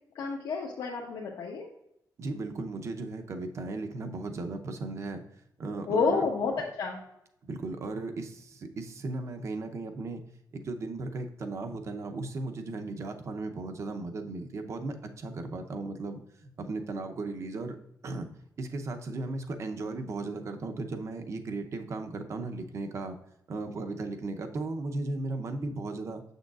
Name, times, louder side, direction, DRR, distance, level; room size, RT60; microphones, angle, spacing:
voice 1, 0.1-1.7 5.9-7.0, left 4 dB, 80° left, -2 dB, 1.0 m, -30 dB
voice 2, 2.2-5.2 5.6-6.2 7.4-10.2 10.5-17.8 18.0-18.3 18.6-23.1 23.5-26.2, right 3 dB, 45° right, 6 dB, 0.7 m, -36 dB
7.1 x 6.5 x 2.4 m, 0.79 s
wide cardioid pair, 170°, 7 cm